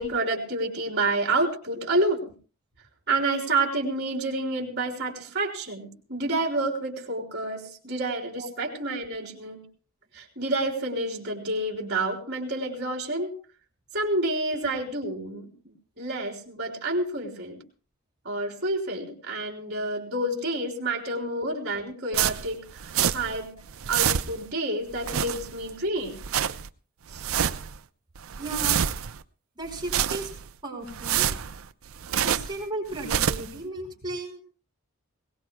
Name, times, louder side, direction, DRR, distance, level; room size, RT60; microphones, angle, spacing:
voice 1, 0.0-2.3 3.1-9.6 10.1-13.3 13.9-17.6 18.2-23.6 23.9-26.1 27.1-27.2, right 2 dB, 55° right, 2 dB, 3.3 m, -29 dB
sound 1, 22.1-23.4 23.7-24.5 24.9-25.7 26.1-26.7 27.1-27.8 28.2-29.2 29.7-30.5 30.9-32.6 32.9-33.6, right 9 dB, 70° right, 0.6 m, -27 dB
voice 2, 28.4-28.9 29.6-30.3 30.6-31.3 32.2-34.4, right 2 dB, 20° right, -1 dB, 5.0 m, -35 dB
21.5 x 18.5 x 2.2 m, 0.38 s
head